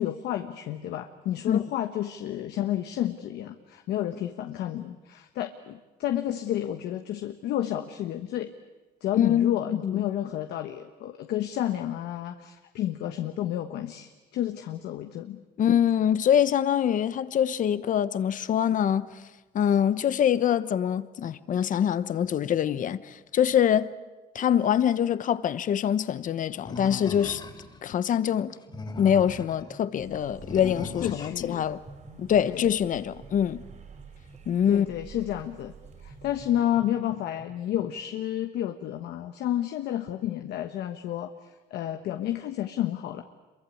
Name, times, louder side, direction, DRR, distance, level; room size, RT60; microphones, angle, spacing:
voice 1, 0.0-8.5 9.0-15.4 31.0-31.7 32.4-32.7 34.7-35.7 36.0-43.2, left 12 dB, 75° left, 1.3 m, -31 dB
voice 2, 9.2-10.0 15.6-19.1 19.5-23.9 24.3-27.4 27.8-28.6 29.0-31.8 32.2-33.6 34.5-34.9, left 9 dB, 50° left, 1.1 m, -24 dB
Animal, 26.6-27.8 28.5-29.6 30.4-31.4, left 3 dB, 25° left, 3.4 m, -38 dB
sound 1, 28.7-29.3 29.6-31.3 31.8-37.9, right 2 dB, 30° right, 2.6 m, -51 dB
sound 2, 30.0-36.6, right 7 dB, 45° right, 5.5 m, -50 dB
26.5 x 23.5 x 8.6 m
cardioid pair, 110°, 17 cm